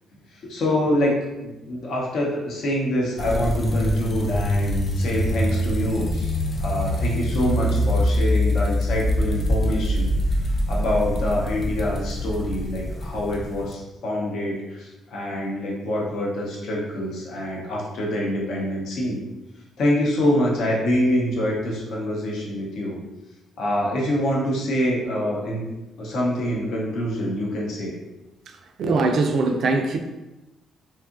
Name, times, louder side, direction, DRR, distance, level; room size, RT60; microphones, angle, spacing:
voice 1, 0.4-1.1 1.4-10.1 10.7-19.2 19.8-23.0 23.6-25.7 26.0-28.0, left 1 dB, 75° left, -3 dB, 0.7 m, -25 dB
sound 1, 3.2-13.7, left 1 dB, 35° left, 0.4 m, -24 dB
voice 2, 28.8-30.0, right 3 dB, 65° right, 5 dB, 0.3 m, -21 dB
2.8 x 2.3 x 2.4 m, 0.99 s
cardioid pair, 90°, 0 cm